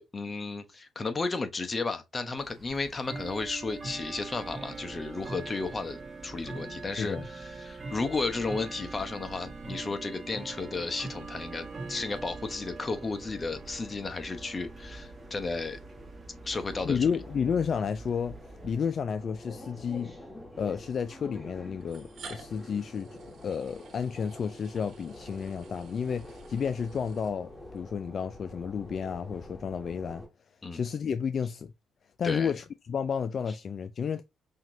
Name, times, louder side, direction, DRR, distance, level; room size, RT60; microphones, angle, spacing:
voice 1, 0.0-6.0 6.2-15.8 16.4-17.1 30.6-30.8 32.2-32.5, left 3 dB, 30° left, 0.9 m, -33 dB
Bell / Tick-tock, 2.4-18.7, right 3 dB, 30° right, 1.5 m, -43 dB
voice 2, 6.9-7.3 16.8-20.1 20.6-23.1 23.4-30.2 30.7-31.7 32.2-34.2, left 6 dB, 50° left, 0.3 m, -31 dB
sound 1, 13.5-30.3, left 1 dB, 10° left, 1.7 m, -48 dB
sound 2, 19.5-19.6 20.8-20.9 21.8-27.8, right 5 dB, 65° right, 1.5 m, -52 dB
5.7 x 2.9 x 2.7 m
cardioid pair, 90°, 0 cm